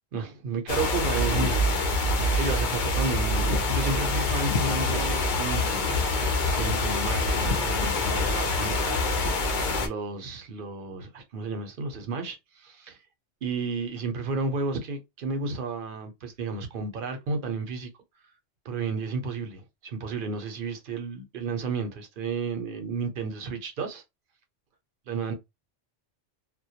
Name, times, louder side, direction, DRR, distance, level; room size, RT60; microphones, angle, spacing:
voice 1, 0.1-9.3 9.8-13.0 13.4-17.9 18.6-24.0 25.1-25.3, right 4 dB, 55° right, 0.7 m, -32 dB
sound 1, 0.7-9.9, left 2 dB, 55° left, 0.6 m, -25 dB
2.1 x 2.1 x 2.7 m
omnidirectional pair, 1.2 m